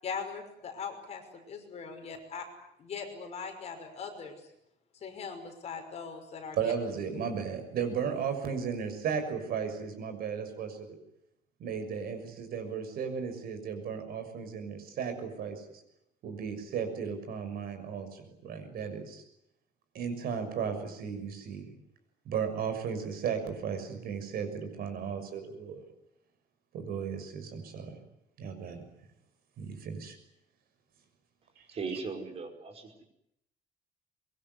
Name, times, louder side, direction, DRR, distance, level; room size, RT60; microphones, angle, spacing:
voice 1, 0.0-2.5 2.8-4.4 4.9-6.6, left 5 dB, 40° left, 5 dB, 5.8 m, -40 dB
voice 2, 6.5-11.0 11.6-15.6 16.2-19.2 19.9-21.7 22.2-25.8 26.7-28.0 28.4-28.8 29.6-30.2, right 6 dB, 60° right, 8 dB, 6.4 m, -35 dB
voice 3, 31.7-33.0, right 4 dB, 35° right, 5 dB, 5.1 m, -38 dB
24.5 x 23.5 x 9.6 m, 0.79 s
cardioid pair, 175°, 17 cm